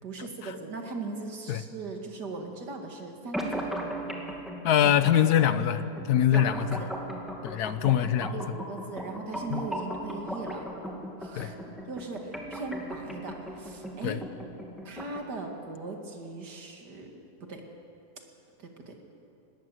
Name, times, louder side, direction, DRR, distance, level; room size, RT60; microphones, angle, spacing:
voice 1, 0.0-3.7 6.2-6.9 7.6-7.8 8.3-10.6 11.2-14.2 14.8-17.1 17.4-17.6 18.6-19.0, right 3 dB, 85° right, 3 dB, 2.7 m, -39 dB
sound 1, 3.3-15.3, right 1 dB, ahead, 2.2 m, -38 dB
voice 2, 4.6-5.8 6.1-6.7 7.4-8.4 9.5-9.6 11.4-11.5 14.0-14.2, left 10 dB, 75° left, 13 dB, 1.3 m, -23 dB
20.5 x 17.5 x 7.9 m, 2.7 s
omnidirectional pair, 1.7 m